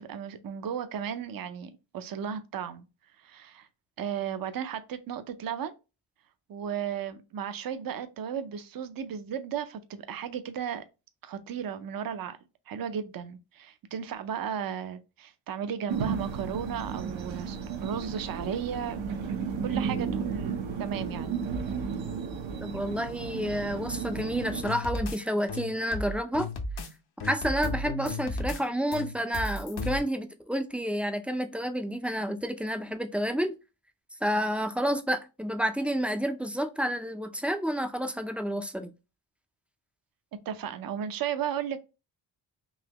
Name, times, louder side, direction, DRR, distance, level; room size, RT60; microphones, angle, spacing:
voice 1, 0.0-2.9 3.2-3.7 4.0-5.7 6.5-10.8 11.2-12.4 12.7-19.0 19.6-21.3 40.5-41.8, right 8 dB, 50° right, 0.6 m, -35 dB
sound 1, 15.9-24.6, right 6 dB, 75° right, 0.9 m, -33 dB
voice 2, 22.6-26.5 27.2-33.5 34.2-38.9, equal, 5° right, 0.4 m, -30 dB
sound 2, 24.6-25.2 25.5-26.9 27.2-28.6 28.9-30.0, left 2 dB, 55° left, 0.8 m, -34 dB
4.0 x 2.7 x 2.9 m
cardioid pair, 100°, 45 cm